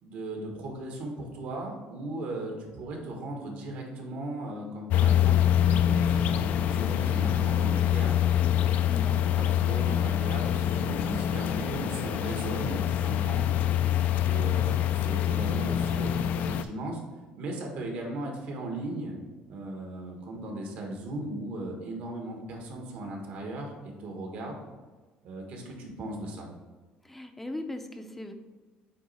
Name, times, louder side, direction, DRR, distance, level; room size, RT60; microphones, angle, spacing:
voice 1, 0.0-8.3 9.4-13.5 14.2-17.0 17.4-19.1 19.5-24.6 25.2-26.5, right 1 dB, 65° right, 1 dB, 1.6 m, -37 dB
sound 1, 4.9-16.6, left 10 dB, 60° left, 0.4 m, -25 dB
voice 2, 8.9-9.4 27.0-28.3, left 1 dB, 5° left, 6 dB, 0.6 m, -38 dB
8.6 x 3.1 x 4.3 m, 1.3 s
cardioid pair, 145°, 3 cm